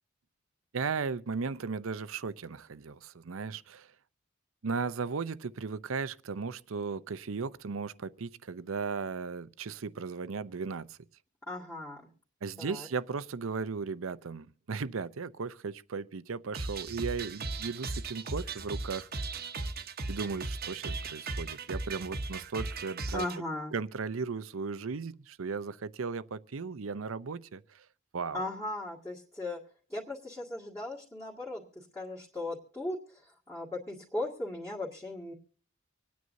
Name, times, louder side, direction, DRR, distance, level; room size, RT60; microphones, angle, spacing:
voice 1, 0.7-3.9 4.6-11.0 12.4-19.1 20.1-23.3 23.7-27.8 28.1-28.4, right 5 dB, 90° right, 0.6 m, -36 dB
voice 2, 11.5-12.0 12.6-12.9 23.1-23.7 28.3-29.6 29.9-35.3, left 2 dB, 15° left, 2.0 m, -37 dB
sound 1, 16.5-23.4, right 3 dB, 50° right, 1.0 m, -37 dB
26.0 x 9.4 x 2.7 m
head